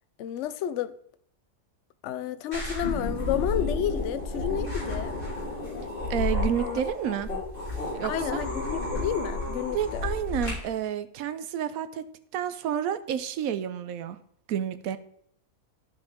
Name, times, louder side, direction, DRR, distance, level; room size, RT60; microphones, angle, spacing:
voice 1, 0.2-0.9 2.0-5.2 6.6-6.8 8.0-10.1, left 10 dB, 65° left, 0.8 m, -31 dB
sound 1, 2.5-10.5, left 2 dB, 35° left, 3.8 m, -31 dB
voice 2, 6.1-7.3 7.9-8.4 9.7-12.0 12.3-14.2 14.5-15.0, right 9 dB, 70° right, 1.0 m, -30 dB
12.5 x 4.9 x 3.6 m
omnidirectional pair, 1.6 m